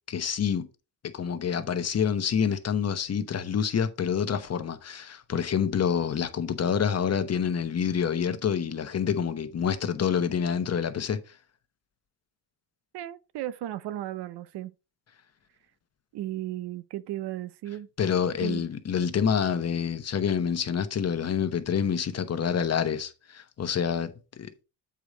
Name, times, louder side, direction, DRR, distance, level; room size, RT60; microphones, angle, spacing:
voice 1, 0.1-0.7 1.0-11.2 18.0-24.6, left 7 dB, 35° left, 1.0 m, -27 dB
voice 2, 12.9-14.7 16.1-17.9 18.4-18.7, right 13 dB, 70° right, 0.7 m, -35 dB
8.0 x 5.0 x 3.9 m
cardioid pair, 120°, 41 cm